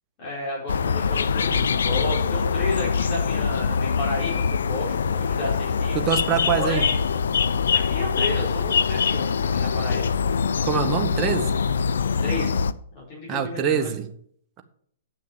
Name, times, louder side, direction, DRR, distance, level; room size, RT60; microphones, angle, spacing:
voice 1, 0.2-6.0 6.6-7.0 7.7-10.1 12.2-12.6 12.9-14.0, left 1 dB, 35° left, -7 dB, 4.7 m, -32 dB
sound 1, 0.7-12.7, left 6 dB, 70° left, 0.5 m, -23 dB
voice 2, 5.9-6.8 10.6-11.5 13.3-14.1, right 7 dB, 25° right, 6 dB, 1.3 m, -24 dB
8.8 x 6.4 x 7.2 m, 0.62 s
hypercardioid pair, 120°, 0 cm